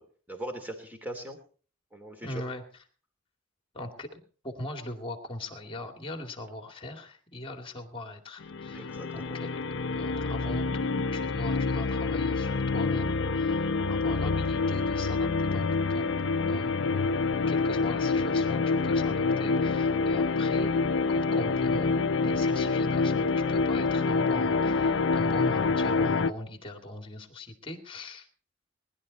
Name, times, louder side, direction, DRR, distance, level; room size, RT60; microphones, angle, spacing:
voice 1, 0.0-1.4 1.9-2.4 8.7-9.4, right 1 dB, 10° right, 5 dB, 2.7 m, -40 dB
voice 2, 2.2-2.6 3.7-9.5 9.9-16.1 16.5-16.7 17.5-20.8 21.1-28.3, left 1 dB, 25° left, 6 dB, 2.2 m, -40 dB
sound 1, 8.4-26.3, left 4 dB, 65° left, 0.6 m, -27 dB
20.0 x 11.5 x 4.1 m, 0.40 s
head